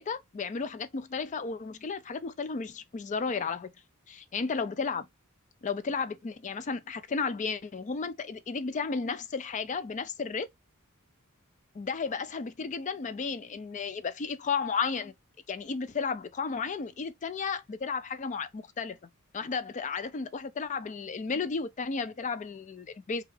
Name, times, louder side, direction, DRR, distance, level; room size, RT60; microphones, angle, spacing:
voice 1, 0.0-3.7 4.1-5.1 5.6-10.5 11.7-15.1 15.5-19.0 19.3-23.2, left 5 dB, 35° left, 0.4 m, -33 dB
3.4 x 2.4 x 3.2 m
head